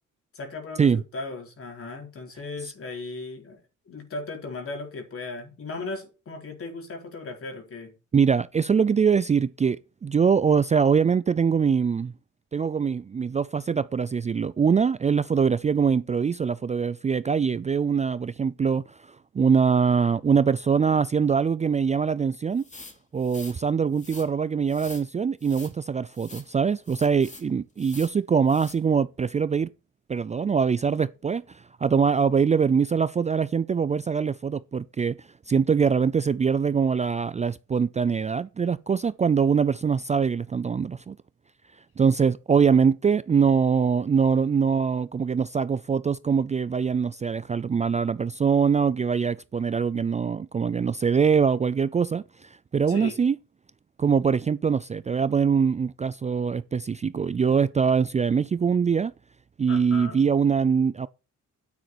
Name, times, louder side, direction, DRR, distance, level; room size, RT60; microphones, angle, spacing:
voice 1, 0.3-8.0 52.9-53.2 59.7-60.2, left 3 dB, 45° left, 4.2 m, -37 dB
voice 2, 8.1-12.1 12.5-22.6 23.1-29.7 30.1-41.2 42.0-53.4 54.0-59.1 59.6-61.1, right 6 dB, 25° right, 0.4 m, -23 dB
sound 1, 22.6-23.6 23.9-24.3 24.7-25.1 25.4-25.7 26.1-26.5 26.8-27.5 27.8-28.2 28.5-28.8, left 2 dB, 25° left, 2.7 m, -45 dB
9.6 x 8.5 x 4.4 m
cardioid pair, 90°, 30 cm